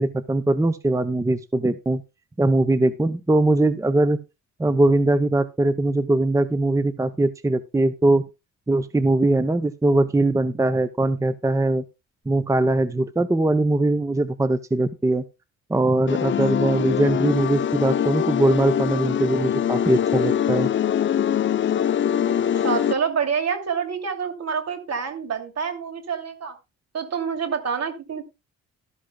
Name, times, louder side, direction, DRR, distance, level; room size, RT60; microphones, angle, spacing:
voice 1, 0.0-2.0 2.4-4.2 4.6-8.2 8.7-11.8 12.3-15.2 15.7-20.7, right 2 dB, 10° right, 12 dB, 0.7 m, -21 dB
sound 1, 16.1-22.9, left 9 dB, 40° left, 0.5 m, -23 dB
voice 2, 22.5-26.5 26.9-28.2, right 6 dB, 60° right, 6 dB, 2.7 m, -27 dB
13.0 x 13.0 x 2.3 m, 0.25 s
cardioid pair, 90°, 30 cm